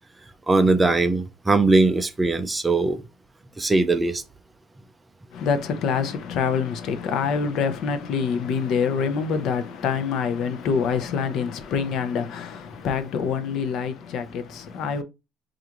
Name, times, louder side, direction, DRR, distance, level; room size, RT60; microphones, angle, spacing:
voice 1, 0.5-3.0 3.6-4.2, right 3 dB, 10° right, 0.4 m, -20 dB
voice 2, 5.3-15.0, left 6 dB, 55° left, 0.6 m, -26 dB
4.7 x 2.5 x 2.9 m
cardioid pair, 170°, 0 cm